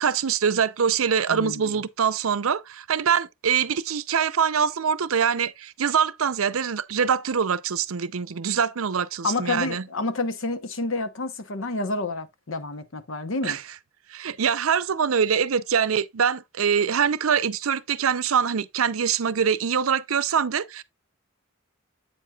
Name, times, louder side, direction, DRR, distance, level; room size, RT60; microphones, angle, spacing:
voice 1, 0.0-9.8 13.4-13.6 14.1-20.8, right 7 dB, 80° right, 0.6 m, -24 dB
voice 2, 1.3-1.8 9.2-13.6, left 3 dB, 65° left, 0.9 m, -29 dB
8.4 x 7.5 x 2.3 m
head